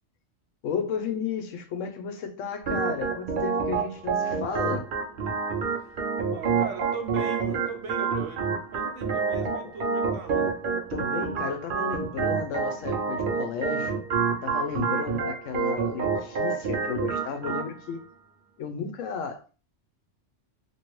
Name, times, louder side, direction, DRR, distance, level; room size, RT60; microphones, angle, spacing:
voice 1, 0.6-4.9 10.9-14.0 14.4-18.0 18.6-19.5, left 6 dB, 85° left, 1.0 m, -33 dB
Organ, 2.6-17.7, right 5 dB, 55° right, 0.7 m, -28 dB
voice 2, 6.3-10.6, right 6 dB, 75° right, 1.0 m, -38 dB
3.0 x 2.6 x 3.0 m
omnidirectional pair, 1.3 m